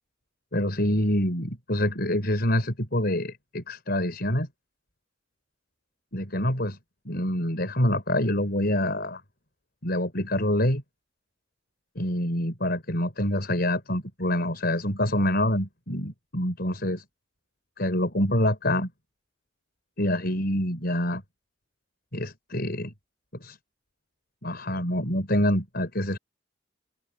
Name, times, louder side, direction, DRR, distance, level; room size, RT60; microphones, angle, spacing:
voice 1, 0.5-4.5 6.1-6.8 7.1-9.2 9.8-10.8 12.0-17.0 17.8-18.9 20.0-21.2 22.1-22.9 23.3-23.6 24.4-26.2, left 1 dB, 55° left, 5.6 m, -26 dB
open air
head